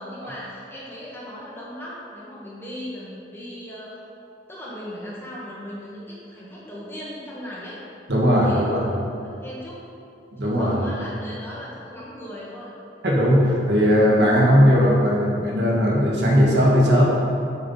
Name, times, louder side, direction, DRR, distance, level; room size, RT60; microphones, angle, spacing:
voice 1, 0.0-4.0 4.5-7.8 8.4-8.8 9.2-9.8 10.4-12.7, equal, 10° left, -7 dB, 1.3 m, -37 dB
voice 2, 8.1-8.8 10.3-10.8 13.0-17.1, equal, 65° right, -4 dB, 1.5 m, -18 dB
7.5 x 5.9 x 4.2 m, 2.6 s
head